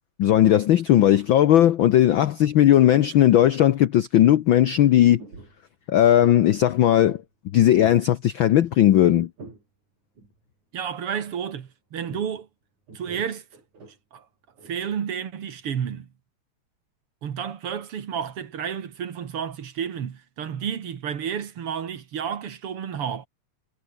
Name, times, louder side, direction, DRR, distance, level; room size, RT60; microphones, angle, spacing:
voice 1, 0.2-5.2 5.9-7.2 7.5-9.3, left 12 dB, 85° left, 1.1 m, -17 dB
sound 1, 4.0-4.1 4.3-4.8 5.2-5.6 6.2-6.5 7.0-7.3 7.6-8.1 8.4-9.6 10.2-10.4 12.1-12.4 12.9-14.0 14.6-14.7, right 3 dB, 85° right, 9.1 m, -44 dB
voice 2, 10.7-12.5 12.9-13.5 14.1-14.3 14.7-16.1 17.2-23.3, right 8 dB, 55° right, 2.4 m, -31 dB
omnidirectional pair, 3.3 m